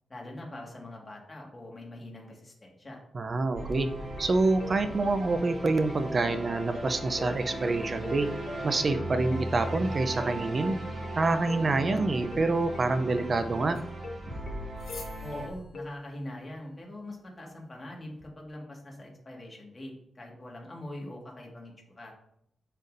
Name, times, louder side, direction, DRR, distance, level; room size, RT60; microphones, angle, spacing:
voice 1, 0.1-3.0 15.2-22.1, left 1 dB, 25° left, -1 dB, 1.7 m, -43 dB
voice 2, 3.1-3.9 4.2-8.3 8.6-10.8 11.2-13.8, right 3 dB, 35° right, 9 dB, 0.5 m, -27 dB
sound 1, 3.5-15.5, right 1 dB, 55° right, 1.9 m, -38 dB
sound 2, 4.2-15.9, left 2 dB, 55° left, 1.3 m, -42 dB
sound 3, 12.3-18.3, left 4 dB, 80° left, 1.8 m, -53 dB
7.1 x 6.5 x 2.6 m, 0.73 s
wide cardioid pair, 125°, 0 cm